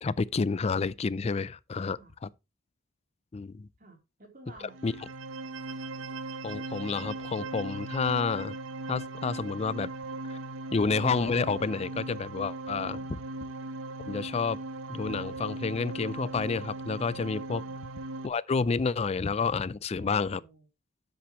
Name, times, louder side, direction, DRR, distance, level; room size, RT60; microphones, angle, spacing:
voice 1, 0.0-2.3 3.3-3.7 4.8-4.9 6.4-8.6 8.9-9.9 10.3-10.4 10.7-13.2 14.1-14.6 14.9-17.6 18.2-20.4, left 4 dB, 35° left, 0.4 m, -29 dB
voice 2, 3.8-4.9 12.9-13.1 17.6-17.8 20.0-20.7, right 2 dB, 45° right, 3.5 m, -52 dB
sound 1, 4.7-18.3, right 2 dB, 90° right, 0.8 m, -38 dB
10.0 x 7.8 x 3.0 m
head